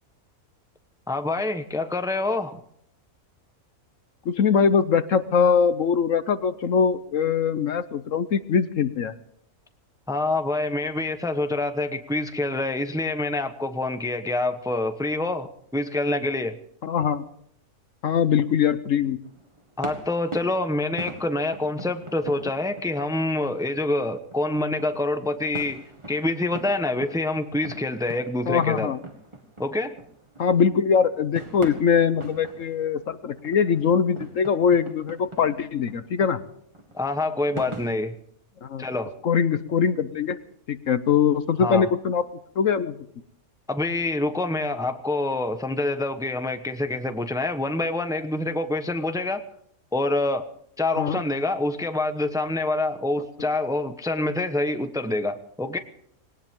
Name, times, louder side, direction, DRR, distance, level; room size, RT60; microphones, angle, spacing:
voice 1, 1.1-2.6 10.1-16.6 19.8-25.8 26.1-28.9 29.6-29.9 36.9-38.1 38.8-39.1 41.6-41.9 43.7-49.4 49.9-50.5 50.8-55.8, left 2 dB, 5° right, 8 dB, 0.9 m, -26 dB
voice 2, 4.2-9.1 16.8-17.2 18.0-19.2 28.5-29.0 30.4-36.4 38.6-38.8 39.2-40.4 40.7-42.2 42.6-43.0 51.0-51.2, left 6 dB, 60° left, 13 dB, 1.2 m, -22 dB
sound 1, 19.2-38.0, right 1 dB, 20° right, 2.0 m, -42 dB
21.0 x 18.0 x 3.7 m, 0.69 s
omnidirectional pair, 1.6 m